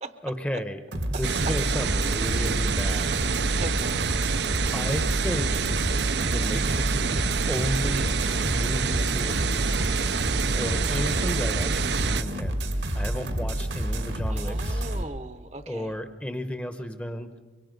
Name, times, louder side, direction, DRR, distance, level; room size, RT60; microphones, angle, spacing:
voice 1, 0.2-0.8 1.1-3.2 4.7-5.6 6.2-9.9 10.5-12.6 12.9-14.8 15.7-17.3, equal, 5° left, 9 dB, 0.9 m, -33 dB
sound 1, 0.9-15.0, right 1 dB, 85° right, 2.1 m, -29 dB
sound 2, 1.2-12.2, right 6 dB, 65° right, 0.6 m, -27 dB
voice 2, 2.7-3.2 3.6-4.0 14.3-15.9, right 2 dB, 35° right, 10 dB, 0.8 m, -40 dB
24.0 x 23.0 x 5.3 m, 1.4 s
head